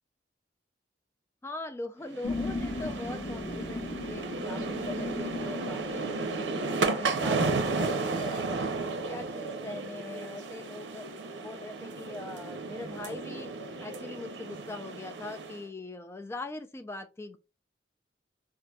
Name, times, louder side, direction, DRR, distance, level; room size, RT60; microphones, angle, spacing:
voice 1, 1.4-8.6 9.1-11.1 11.4-13.6 13.8-17.4, left 2 dB, 15° left, 0.3 m, -42 dB
sound 1, 2.1-15.6, right 3 dB, 80° right, 0.6 m, -33 dB
sound 2, 2.2-8.5, left 2 dB, 65° left, 0.9 m, -38 dB
3.9 x 2.5 x 2.2 m
head